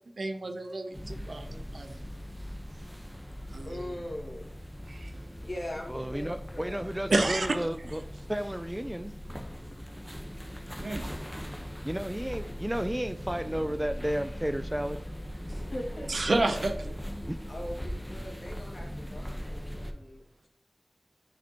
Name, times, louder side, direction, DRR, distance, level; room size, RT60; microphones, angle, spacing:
voice 1, 0.2-2.0 3.5-3.8 4.9-5.1 7.1-7.6 10.8-11.1 16.1-16.7, right 2 dB, 90° right, 7 dB, 0.8 m, -30 dB
sound 1, 0.9-19.9, equal, 5° left, 1.1 m, -40 dB
voice 2, 3.7-4.6 5.4-6.9 15.4-16.6 17.5-20.2, left 1 dB, 60° left, -1 dB, 2.2 m, -41 dB
voice 3, 5.9-8.0 8.3-9.1 11.8-15.0 17.3-17.4, equal, 15° right, 9 dB, 0.4 m, -32 dB
9.1 x 5.1 x 3.0 m, 0.74 s
wide cardioid pair, 50°, 0 cm